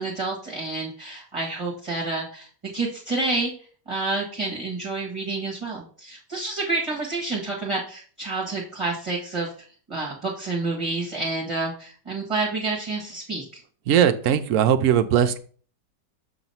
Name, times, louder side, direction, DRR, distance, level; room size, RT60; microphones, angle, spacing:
voice 1, 0.0-2.5 2.7-3.5 3.9-9.5 9.9-13.4, right 3 dB, 20° right, 1.4 m, -29 dB
voice 2, 13.9-15.4, right 9 dB, 70° right, 0.7 m, -19 dB
7.1 x 3.0 x 5.4 m
omnidirectional pair, 1.8 m